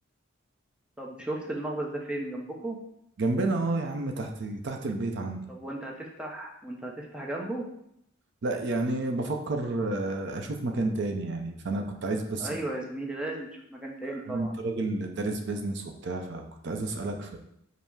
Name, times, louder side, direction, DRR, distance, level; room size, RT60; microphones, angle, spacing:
voice 1, 1.0-2.8 5.5-7.7 12.4-14.5, right 2 dB, 5° right, -1 dB, 0.6 m, -35 dB
voice 2, 3.2-5.4 8.4-12.6 14.1-17.4, right 2 dB, 60° right, 4 dB, 0.5 m, -30 dB
5.4 x 2.0 x 4.6 m, 0.75 s
head